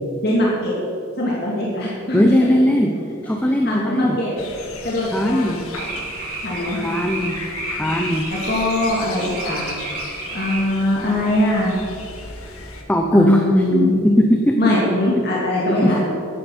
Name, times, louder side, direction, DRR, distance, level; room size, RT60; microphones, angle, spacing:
voice 1, 0.2-0.7 1.2-2.2 3.6-4.3 4.8-5.6 6.4-6.8 8.5-9.7 10.3-11.7 13.1-13.9 14.6-16.1, left 1 dB, 50° left, -5 dB, 2.3 m, -21 dB
voice 2, 2.1-2.9 3.2-4.2 5.1-5.6 6.7-7.4 7.7-8.3 12.9-13.4 13.9-14.6 15.8-16.0, equal, 5° left, 2 dB, 0.7 m, -18 dB
sound 1, 4.4-12.8, left 3 dB, 90° left, 1.8 m, -36 dB
sound 2, 5.7-10.7, right 3 dB, 45° right, 3.0 m, -31 dB
12.0 x 9.6 x 6.5 m, 2.5 s
head